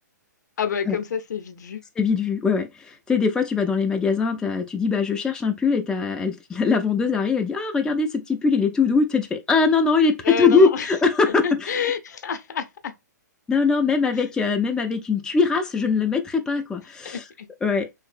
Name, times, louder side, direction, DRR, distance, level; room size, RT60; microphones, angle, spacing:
voice 1, 0.6-1.8 10.2-11.0 11.4-12.9 14.1-14.2 17.0-17.5, left 6 dB, 65° left, 0.6 m, -28 dB
voice 2, 2.0-11.8 13.5-17.2 17.6-17.9, left 4 dB, 5° left, 0.4 m, -21 dB
3.1 x 2.8 x 2.4 m
hypercardioid pair, 125°, 10 cm